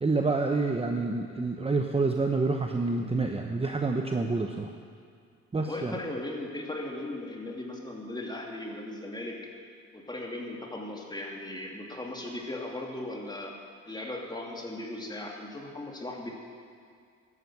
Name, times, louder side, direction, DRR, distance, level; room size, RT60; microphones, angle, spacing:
voice 1, 0.0-4.7 5.5-6.0, right 3 dB, 20° right, 3 dB, 0.9 m, -28 dB
voice 2, 5.6-9.4 9.9-13.5 13.8-16.3, left 1 dB, 15° left, -1 dB, 2.8 m, -37 dB
12.5 x 11.0 x 8.1 m, 2.2 s
cardioid pair, 90°, 30 cm